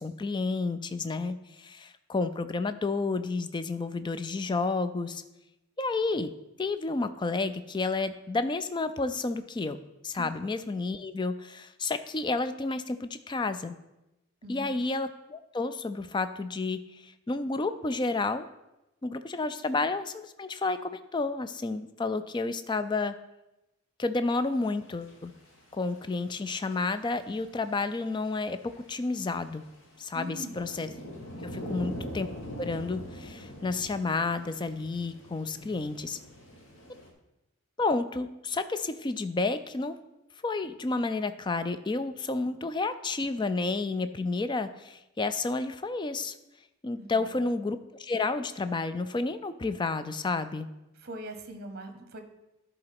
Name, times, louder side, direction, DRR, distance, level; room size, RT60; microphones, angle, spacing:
voice 1, 0.0-5.2 5.8-6.3 6.6-9.8 10.0-13.7 14.5-18.5 19.0-23.2 24.0-25.3 25.7-28.6 28.9-29.6 30.0-30.9 31.4-32.3 32.6-36.2 37.8-40.0 40.4-46.3 46.8-50.7, left 3 dB, 20° left, 11 dB, 0.3 m, -31 dB
voice 2, 14.4-14.7 30.1-30.6 31.5-31.8 47.0-47.3 51.0-52.2, right 1 dB, 45° right, 7 dB, 1.0 m, -42 dB
sound 1, 24.3-24.4 24.8-26.1 26.4-37.1, equal, 55° left, 1.7 m, -43 dB
11.0 x 3.9 x 5.9 m, 0.95 s
head